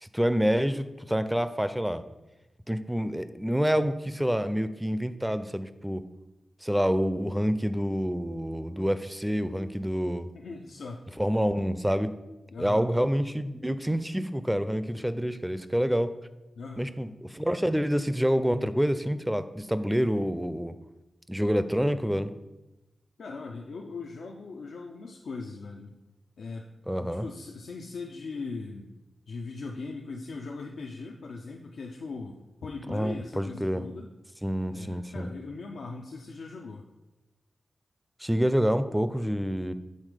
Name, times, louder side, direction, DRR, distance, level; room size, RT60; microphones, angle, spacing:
voice 1, 0.0-2.0 2.7-6.0 6.6-10.3 11.2-12.1 12.6-16.1 16.8-20.7 21.3-22.3 26.9-27.3 32.9-33.8 34.4-35.3 38.2-39.7, equal, 5° right, 12 dB, 0.4 m, -27 dB
voice 2, 10.3-11.1 12.5-12.9 16.6-16.9 23.2-26.0 26.4-28.9 29.3-34.1 34.7-36.9, left 3 dB, 85° left, 1 dB, 0.4 m, -40 dB
6.5 x 3.5 x 4.9 m, 1.0 s
cardioid pair, 60°, 0 cm